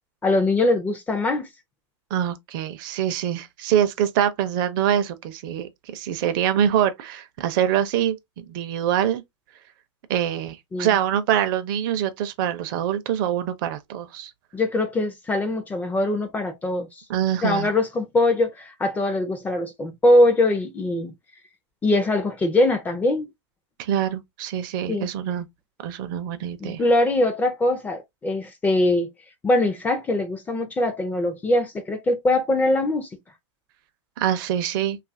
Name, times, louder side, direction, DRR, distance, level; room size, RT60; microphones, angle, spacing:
voice 1, 0.2-1.5 10.7-11.0 14.5-16.9 17.4-21.1 21.8-23.3 24.9-25.1 26.6-29.1 29.4-33.1, left 1 dB, 10° left, 0.4 m, -22 dB
voice 2, 2.1-9.2 10.1-14.3 17.1-17.7 23.8-25.5 25.8-26.8 34.2-35.0, right 10 dB, 45° right, 0.5 m, -24 dB
2.7 x 2.4 x 2.5 m
hypercardioid pair, 135°, 15 cm